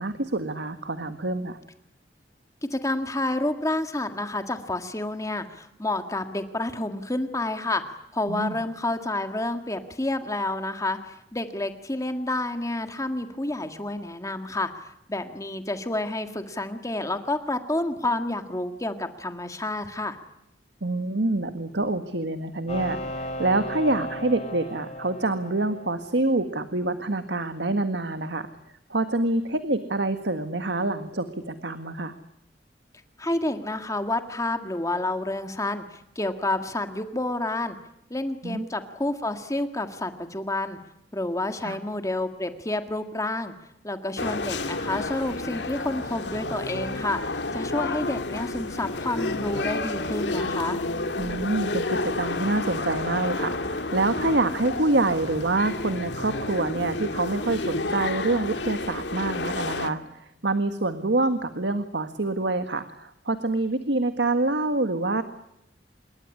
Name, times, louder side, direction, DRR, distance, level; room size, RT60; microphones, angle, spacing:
voice 1, 0.0-1.6 8.3-8.6 20.8-28.5 28.9-32.2 38.4-38.7 41.6-41.8 51.2-65.2, right 2 dB, 85° right, 9 dB, 1.7 m, -26 dB
voice 2, 2.7-7.8 8.1-20.2 33.2-37.8 38.1-40.8 41.1-43.5 43.8-50.8, left 2 dB, 20° left, 7 dB, 1.7 m, -29 dB
sound 1, 22.7-26.4, equal, 40° left, 4.3 m, -36 dB
sound 2, 44.2-59.9, left 2 dB, 90° left, 2.2 m, -30 dB
27.0 x 22.5 x 9.9 m, 0.81 s
head